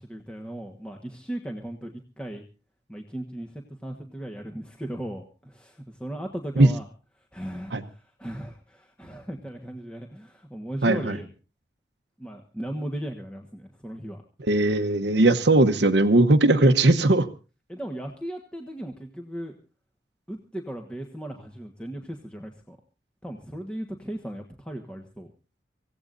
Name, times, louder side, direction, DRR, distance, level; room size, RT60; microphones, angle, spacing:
voice 1, 0.0-2.4 2.9-6.9 7.2-11.3 12.2-14.2 16.6-16.8 17.7-19.6 20.3-22.8 23.2-25.3, right 1 dB, 5° left, 2 dB, 1.3 m, -37 dB
voice 2, 10.8-11.2 14.5-17.3, right 2 dB, 75° right, 6 dB, 1.0 m, -19 dB
25.0 x 16.5 x 2.6 m, 0.34 s
head